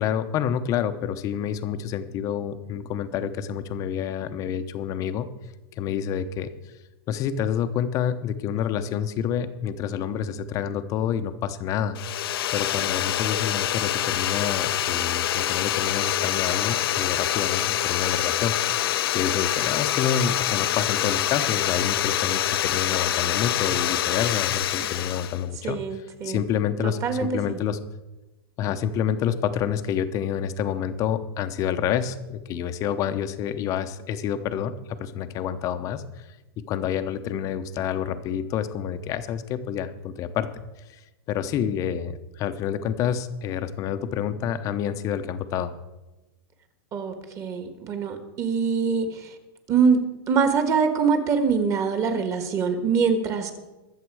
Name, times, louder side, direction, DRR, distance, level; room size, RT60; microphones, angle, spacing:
voice 1, 0.0-5.3 5.8-6.5 7.1-12.0 12.5-18.5 19.1-27.8 28.6-36.3 36.7-40.5 40.9-41.0 41.3-45.7, left 9 dB, 25° left, 10 dB, 0.8 m, -28 dB
sound 1, 11.9-25.4, left 12 dB, 70° left, 0.7 m, -25 dB
voice 2, 25.6-26.4 26.8-27.6 46.9-49.3 49.7-53.6, right 5 dB, 25° right, 8 dB, 1.6 m, -24 dB
22.0 x 7.4 x 4.8 m, 1.1 s
supercardioid pair, 155°, 13 cm